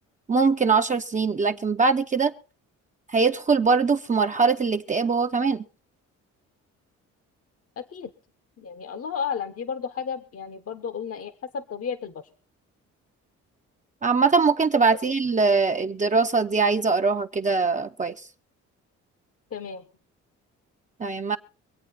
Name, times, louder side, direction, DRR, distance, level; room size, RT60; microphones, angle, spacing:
voice 1, 0.3-2.3 3.1-5.6 14.0-18.1 21.0-21.4, right 4 dB, 25° right, 0.7 m, -22 dB
voice 2, 7.8-8.1 8.6-12.2 14.9-15.1 19.5-19.8, left 6 dB, 50° left, 1.0 m, -33 dB
24.0 x 8.3 x 4.2 m
cardioid pair, 90°, 30 cm